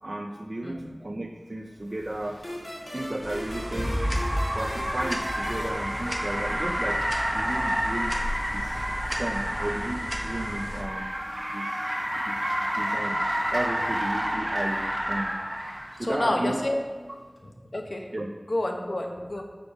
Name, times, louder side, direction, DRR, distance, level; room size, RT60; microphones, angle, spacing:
voice 1, 0.0-2.4 2.9-3.9 4.5-7.0 7.3-8.2 8.5-8.8 9.2-11.1 11.5-13.2 13.5-15.4 16.0-16.6 18.1-18.3, right 1 dB, 55° right, 1 dB, 0.5 m, -34 dB
voice 2, 0.6-0.9 16.0-16.8 17.4-18.1 18.5-19.4, left 1 dB, 75° left, 2 dB, 0.9 m, -29 dB
Car, 2.0-16.0, equal, 30° right, 1.6 m, -30 dB
sound 1, 2.4-6.8, equal, 50° left, 2.0 m, -39 dB
sound 2, 3.2-10.8, equal, 5° right, 1.1 m, -33 dB
6.7 x 5.1 x 5.0 m, 1.5 s
wide cardioid pair, 40°, 0 cm